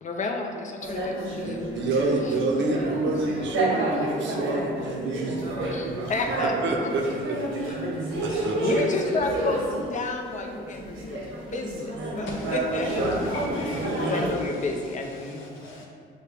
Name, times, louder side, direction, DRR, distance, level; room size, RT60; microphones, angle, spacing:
voice 1, 0.0-1.6 2.2-2.3 5.7-6.9 7.6-7.9 8.3-12.3 12.5-13.0 14.1-15.6, left 3 dB, 40° left, 2 dB, 0.6 m, -31 dB
sound 1, 0.8-9.9 10.2-14.3, right 1 dB, 90° right, 1.1 m, -30 dB
voice 2, 1.3-5.4 5.8-6.1 6.6-7.4 8.2-8.6 13.9-14.2, right 3 dB, 70° right, 1 dB, 0.7 m, -28 dB
voice 3, 12.3-15.9, left 1 dB, 75° left, -2 dB, 1.0 m, -40 dB
6.5 x 2.2 x 3.3 m, 2.2 s
cardioid pair, 90°, 20 cm